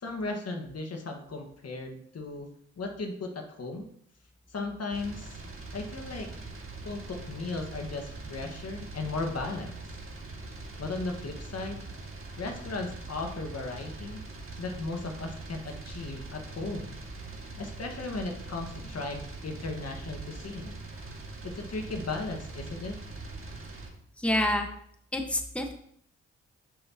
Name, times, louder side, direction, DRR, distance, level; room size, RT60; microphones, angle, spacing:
voice 1, 0.0-2.5 2.8-3.9 4.5-5.3 5.7-6.3 6.8-9.8 10.8-11.8 12.4-14.2 14.6-17.0 17.6-20.8 21.4-23.0, left 3 dB, 55° left, 3 dB, 1.6 m, -36 dB
sound 1, 4.9-23.9, right 3 dB, 45° right, 2.0 m, -42 dB
voice 2, 24.2-24.7 25.1-25.7, left 1 dB, 5° left, 3 dB, 1.3 m, -27 dB
11.0 x 5.4 x 2.9 m, 0.67 s
supercardioid pair, 50°, 30 cm